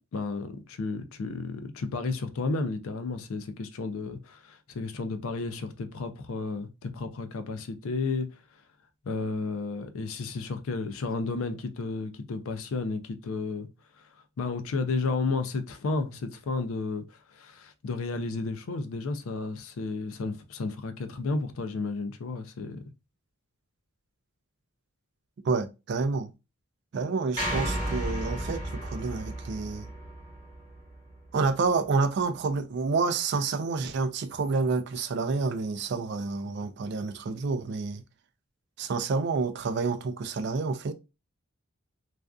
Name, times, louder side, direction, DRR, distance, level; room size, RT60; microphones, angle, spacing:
voice 1, 0.1-8.3 9.0-13.7 14.0-14.1 14.4-22.8, left 3 dB, 70° left, 0.4 m, -32 dB
voice 2, 25.4-26.3 26.9-29.9 31.3-38.0 38.8-40.9, right 4 dB, 50° right, 0.3 m, -29 dB
sound 1, 27.4-31.7, right 1 dB, 20° left, 1.2 m, -34 dB
2.5 x 2.3 x 2.2 m
head